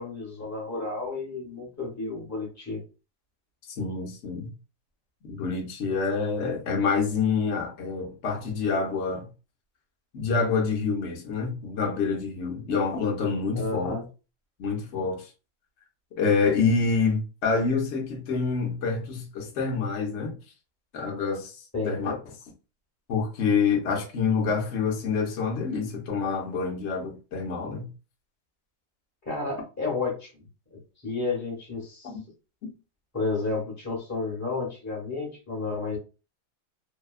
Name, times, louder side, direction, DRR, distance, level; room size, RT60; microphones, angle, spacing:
voice 1, 0.0-2.8 13.5-14.0 21.7-22.2 29.2-30.4 31.0-32.1 33.1-36.0, left 3 dB, 15° left, 0.8 m, -31 dB
voice 2, 3.7-4.5 5.2-9.3 10.1-13.9 14.6-15.3 16.2-20.4 20.9-22.1 23.1-27.9 32.0-32.2, left 5 dB, 60° left, 0.8 m, -27 dB
2.7 x 2.1 x 2.3 m
omnidirectional pair, 1.7 m